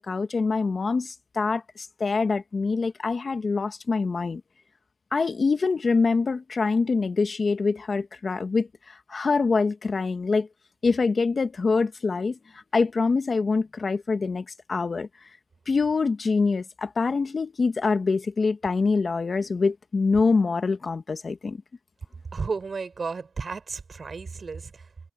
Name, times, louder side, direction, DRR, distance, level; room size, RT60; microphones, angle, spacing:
voice 1, 0.0-4.4 5.1-10.5 10.8-15.1 15.7-21.6, left 4 dB, 35° left, 1.6 m, -25 dB
voice 2, 22.3-25.1, right 4 dB, 35° right, 6.7 m, -33 dB
cardioid pair, 90°, 0 cm